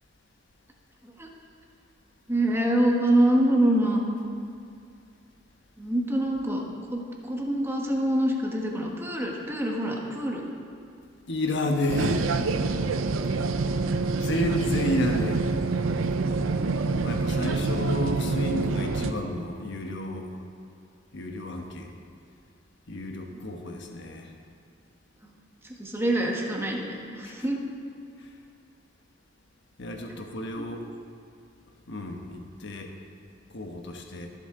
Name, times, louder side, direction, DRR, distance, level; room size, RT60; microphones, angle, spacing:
voice 1, 2.3-4.2 5.8-6.6 6.9-10.4 12.5-12.6 23.3-23.4 25.2-25.3 25.6-27.6 30.2-30.3 30.6-30.7, right 1 dB, 10° right, -1 dB, 1.4 m, -25 dB
voice 2, 11.3-12.5 14.2-15.5 17.0-20.4 21.1-21.9 22.9-24.3 27.2-27.4 28.2-28.3 29.8-30.9 31.9-32.9 33.5-34.3, left 1 dB, 60° left, 3 dB, 1.1 m, -31 dB
sound 1, 11.9-19.1, right 3 dB, 90° right, 0.6 m, -26 dB
22.5 x 8.1 x 3.8 m, 2.4 s
head